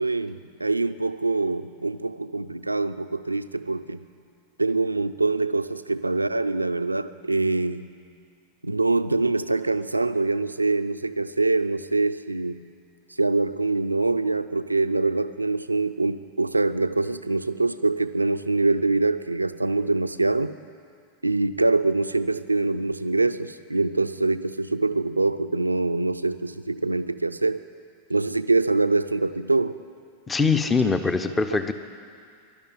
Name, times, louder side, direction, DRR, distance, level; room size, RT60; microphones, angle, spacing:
voice 1, 0.0-4.1 4.6-7.9 8.6-12.7 13.2-20.6 21.2-27.6 28.1-29.8 31.2-31.4, right 3 dB, 85° right, 12 dB, 0.4 m, -24 dB
voice 2, 30.3-31.7, left 4 dB, 15° left, 10 dB, 0.7 m, -22 dB
12.0 x 11.5 x 9.7 m, 2.3 s
figure-of-eight pair, 90°, 0 cm